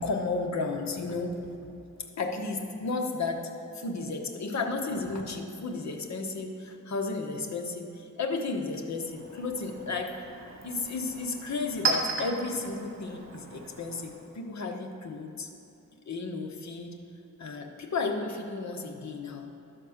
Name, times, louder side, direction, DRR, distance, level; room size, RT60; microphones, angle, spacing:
voice 1, 0.0-1.5 2.2-10.1 10.6-15.5 16.1-17.0 17.4-19.5, left 3 dB, 60° left, 2 dB, 1.2 m, -33 dB
Chink clink, 8.9-14.4, right 4 dB, 40° right, 1.7 m, -36 dB
13.0 x 4.3 x 6.5 m, 2.9 s
wide cardioid pair, 105°, 31 cm